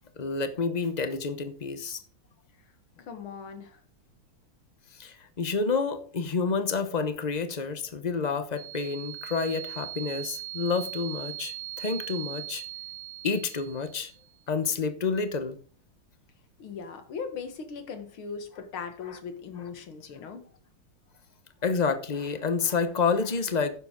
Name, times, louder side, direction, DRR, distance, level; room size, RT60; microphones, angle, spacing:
voice 1, 0.2-2.0 4.9-12.6 13.2-14.1 14.5-15.6 19.1-19.2 21.6-23.7, left 4 dB, 60° left, 0.4 m, -29 dB
voice 2, 3.0-3.8 16.6-20.4, left 6 dB, 80° left, 2.4 m, -39 dB
sound 1, 8.6-14.2, right 16 dB, 70° right, 1.9 m, -40 dB
10.0 x 7.5 x 5.0 m
omnidirectional pair, 2.3 m